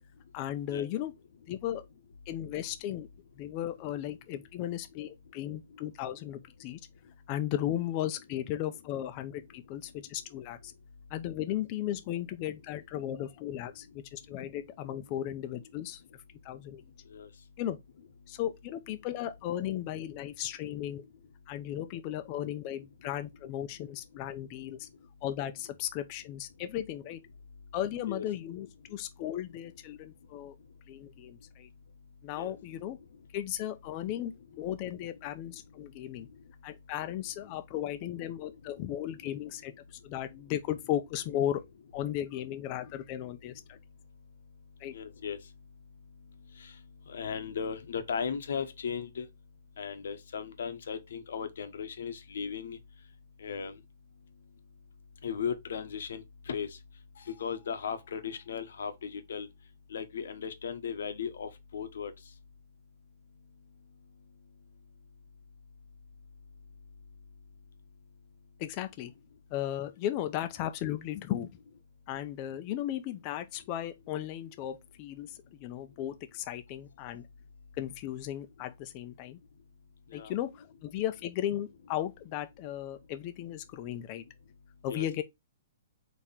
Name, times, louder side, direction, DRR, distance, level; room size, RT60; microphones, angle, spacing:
voice 1, 0.3-1.1 1.5-1.8 2.3-3.1 3.4-6.8 7.3-10.7 11.1-16.8 17.6-17.8 18.3-21.0 21.5-24.9 25.2-27.2 27.7-30.5 30.9-31.7 32.2-33.0 33.3-36.3 36.6-41.6 41.9-43.8 44.8-44.9 68.6-69.1 69.5-71.5 72.1-77.2 77.7-79.4 80.1-84.2 84.8-85.2, left 12 dB, 35° left, 0.6 m, -36 dB
voice 2, 16.9-17.5 18.2-18.4 24.8-25.0 27.6-27.7 28.1-28.2 28.8-28.9 29.9-30.0 30.3-32.5 35.8-36.9 43.7-49.3 49.8-53.8 54.2-54.5 55.2-59.5 59.9-62.4 63.9-64.3 80.1-80.3 84.9-85.1, left 7 dB, 75° left, 1.0 m, -39 dB
4.3 x 3.0 x 3.7 m
hypercardioid pair, 155°, 0 cm